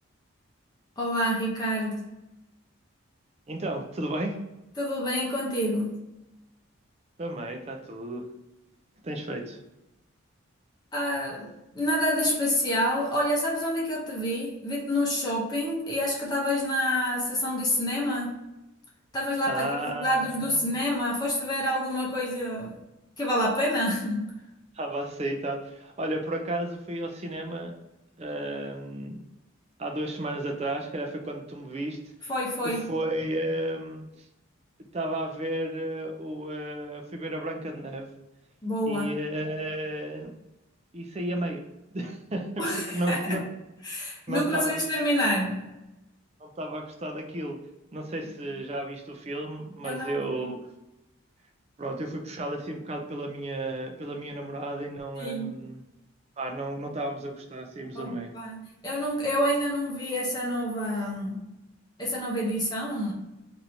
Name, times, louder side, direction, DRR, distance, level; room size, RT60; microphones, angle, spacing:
voice 1, 1.0-2.1 4.8-5.9 10.9-18.4 19.1-22.8 23.2-24.3 32.3-32.9 38.6-39.1 42.6-43.3 43.8-45.7 49.8-50.5 55.2-55.5 57.9-58.6 58.8-61.5 62.0-63.1, equal, 20° left, -4 dB, 0.7 m, -28 dB
voice 2, 3.5-4.4 7.2-8.3 9.0-9.6 19.5-20.7 24.7-27.7 28.2-29.2 29.8-32.3 32.6-34.3 34.9-38.1 38.9-40.3 40.9-41.6 41.9-43.4 44.3-44.8 46.4-47.6 47.9-50.7 51.8-55.8 56.4-58.3, right 1 dB, 30° right, 3 dB, 0.4 m, -33 dB
3.0 x 2.6 x 4.2 m, 0.94 s
head